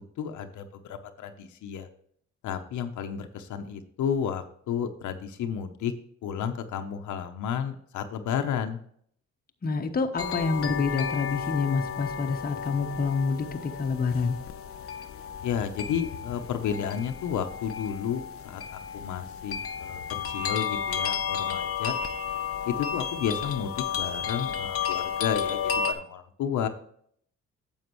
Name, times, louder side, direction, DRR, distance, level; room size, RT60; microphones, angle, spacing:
voice 1, 0.2-1.9 2.4-5.9 6.2-8.8 15.4-20.0 20.3-21.9 22.7-26.7, left 8 dB, 75° left, 7 dB, 0.9 m, -32 dB
voice 2, 9.6-14.4, left 4 dB, 30° left, 5 dB, 1.0 m, -27 dB
sound 1, 10.2-25.9, left 7 dB, 50° left, 0.8 m, -33 dB
9.4 x 7.3 x 3.1 m, 0.63 s
cardioid pair, 90°, 30 cm